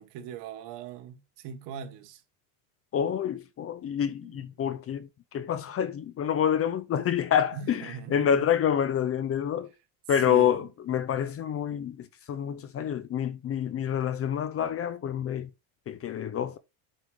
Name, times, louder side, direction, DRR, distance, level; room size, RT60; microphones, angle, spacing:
voice 1, 0.0-2.2 4.2-4.5 7.5-8.5 10.2-10.7, right 8 dB, 65° right, 1.6 m, -41 dB
voice 2, 2.9-9.7 10.1-15.5 15.9-16.6, left 9 dB, 30° left, 0.6 m, -28 dB
8.3 x 4.9 x 3.6 m
cardioid pair, 130°, 45 cm